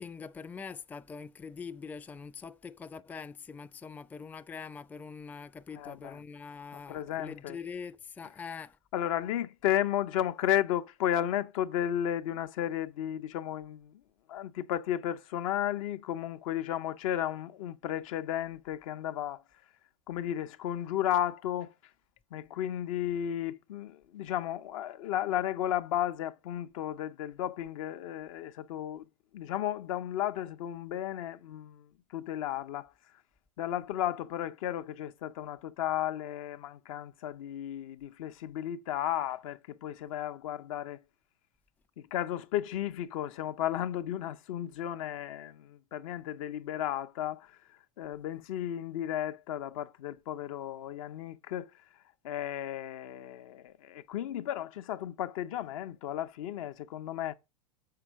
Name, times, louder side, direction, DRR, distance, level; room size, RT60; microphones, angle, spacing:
voice 1, 0.0-8.8, left 5 dB, 10° left, 0.4 m, -43 dB
voice 2, 5.7-6.2 6.9-7.6 8.9-14.0 14.3-19.4 20.1-21.7 22.3-29.1 29.3-32.9 33.6-41.0 42.0-51.7 52.2-57.3, left 11 dB, 65° left, 0.7 m, -34 dB
6.7 x 4.6 x 6.1 m
hypercardioid pair, 100°, 19 cm